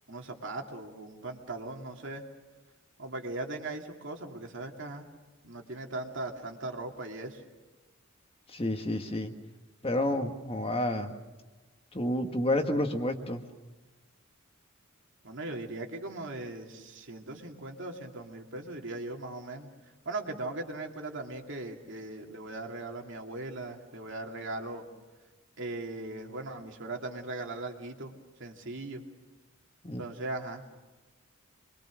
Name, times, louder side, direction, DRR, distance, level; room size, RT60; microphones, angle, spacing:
voice 1, 0.1-2.2 3.0-5.0 5.4-7.4 15.2-19.7 20.1-24.8 25.6-28.1 28.4-29.0 30.0-30.6, right 2 dB, 60° right, 2 dB, 2.6 m, -39 dB
voice 2, 8.5-9.3 9.8-11.2 11.9-13.4 29.8-30.0, left 1 dB, 25° left, 5 dB, 1.6 m, -30 dB
27.0 x 23.0 x 6.3 m, 1.2 s
head